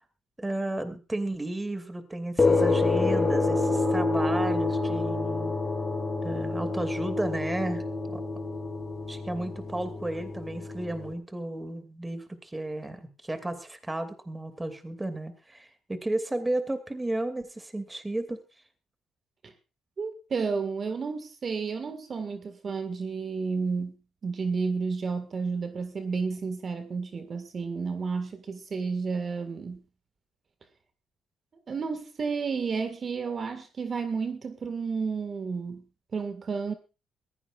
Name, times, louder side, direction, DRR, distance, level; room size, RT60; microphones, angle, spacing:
voice 1, 0.4-5.5 6.2-7.8 8.1-8.2 9.1-18.4, right 1 dB, 15° right, 2.5 m, -33 dB
sound 1, 2.4-11.1, left 3 dB, 25° left, 3.3 m, -27 dB
voice 2, 20.0-24.0 24.2-29.8 31.7-35.8 36.1-36.7, right 5 dB, 45° right, 1.9 m, -31 dB
21.5 x 16.0 x 2.5 m
cardioid pair, 90°, 0 cm